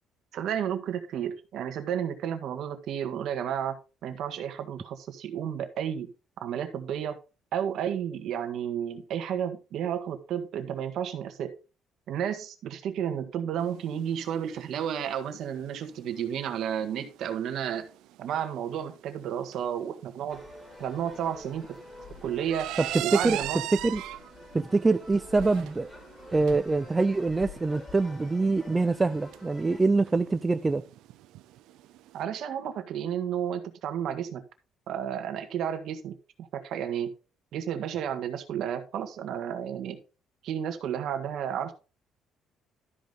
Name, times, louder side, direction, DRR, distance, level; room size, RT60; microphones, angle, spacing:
voice 1, 0.3-6.1 6.4-7.2 7.5-11.6 12.1-17.9 18.2-20.4 20.8-21.8 22.2-22.7 23.0-23.6 32.1-34.4 34.9-37.1 37.5-40.0 40.4-41.7, right 9 dB, 60° right, 1.6 m, -32 dB
sound 1, 13.6-32.2, right 14 dB, 85° right, 0.6 m, -41 dB
sound 2, 20.3-29.8, left 2 dB, 15° left, 2.0 m, -47 dB
voice 2, 22.8-23.4 23.7-24.0 24.5-25.9 26.3-30.8, right 3 dB, 15° right, 0.4 m, -25 dB
12.5 x 5.1 x 3.9 m
cardioid pair, 150°, 0 cm